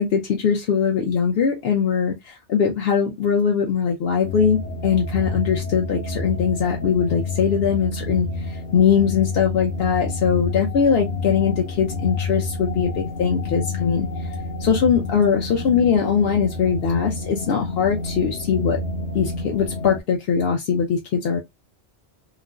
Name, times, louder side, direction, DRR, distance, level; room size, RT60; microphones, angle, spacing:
voice 1, 0.0-14.1 14.6-18.8 19.1-21.4, left 7 dB, 65° left, 0.8 m, -21 dB
sound 1, 4.2-20.0, left 3 dB, 90° left, 1.0 m, -29 dB
3.0 x 2.5 x 2.3 m
omnidirectional pair, 1.2 m